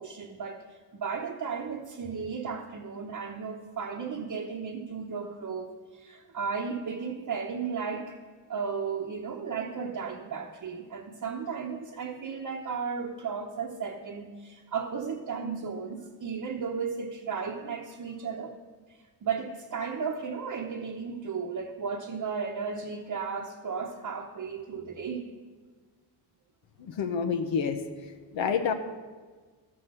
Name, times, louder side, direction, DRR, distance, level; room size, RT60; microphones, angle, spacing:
voice 1, 0.0-8.2 8.5-18.5 19.2-25.2, right 5 dB, 40° right, -1 dB, 1.0 m, -34 dB
voice 2, 26.8-27.8 28.3-28.7, left 6 dB, 70° left, 6 dB, 1.0 m, -28 dB
13.0 x 6.3 x 7.4 m, 1.4 s
cardioid pair, 120°, 48 cm